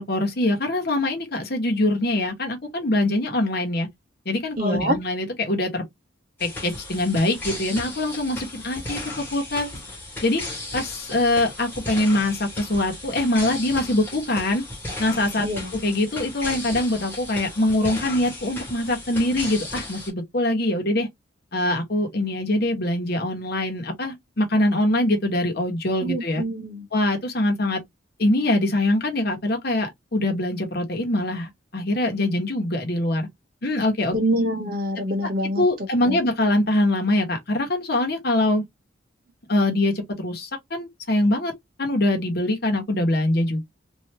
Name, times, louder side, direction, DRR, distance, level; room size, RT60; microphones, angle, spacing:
voice 1, 0.0-3.9 4.2-5.8 6.4-9.0 9.3-9.7 10.2-10.4 10.7-14.6 15.0-21.1 21.5-26.4 26.9-27.8 28.2-33.3 33.6-34.2 35.6-38.6 39.5-41.5 41.8-43.6, left 1 dB, 50° left, 1.2 m, -23 dB
voice 2, 4.6-5.0 15.4-15.7 26.0-26.9 34.1-35.6 36.1-36.2, equal, 50° right, 0.9 m, -25 dB
sound 1, 6.4-20.1, left 2 dB, 10° left, 1.4 m, -35 dB
3.3 x 2.7 x 2.9 m
head